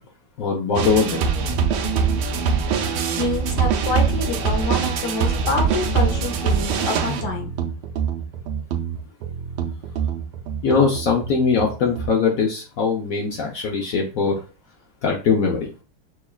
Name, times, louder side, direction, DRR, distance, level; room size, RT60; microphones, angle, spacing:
voice 1, 0.4-1.3 10.6-14.3 15.0-15.7, left 5 dB, 80° left, 0 dB, 0.7 m, -21 dB
sound 1, 0.8-12.1, right 6 dB, 80° right, 1.5 m, -24 dB
voice 2, 3.2-7.5, left 2 dB, 65° left, 2 dB, 1.1 m, -27 dB
6.1 x 2.3 x 2.3 m, 0.33 s
omnidirectional pair, 2.4 m